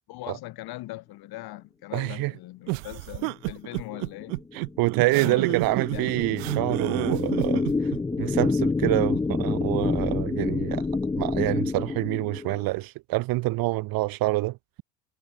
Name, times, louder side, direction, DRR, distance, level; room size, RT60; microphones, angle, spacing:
voice 1, 0.1-4.4 5.1-6.2, left 18 dB, 50° left, 2.9 m, -40 dB
voice 2, 1.9-2.3 4.5-7.6 8.2-10.9 11.2-14.6, right 20 dB, 45° right, 1.0 m, -26 dB
sound 1, 2.7-8.0, right 38 dB, 60° right, 1.7 m, -30 dB
sound 2, 3.9-12.7, left 3 dB, 10° left, 0.6 m, -28 dB
hypercardioid pair, 85°, 48 cm